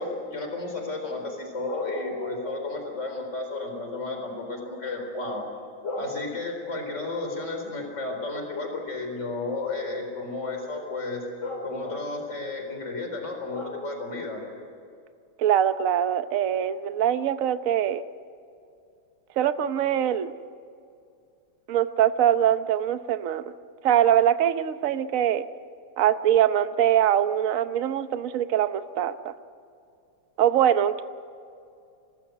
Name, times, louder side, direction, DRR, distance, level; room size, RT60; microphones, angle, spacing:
voice 1, 0.0-5.4 5.8-14.4, left 2 dB, 35° left, 3 dB, 4.5 m, -32 dB
voice 2, 15.4-18.0 19.4-20.3 21.7-23.5 23.8-25.5 26.0-29.3 30.4-31.1, right 10 dB, 55° right, 11 dB, 1.0 m, -23 dB
26.0 x 19.0 x 7.9 m, 2.5 s
omnidirectional pair, 2.2 m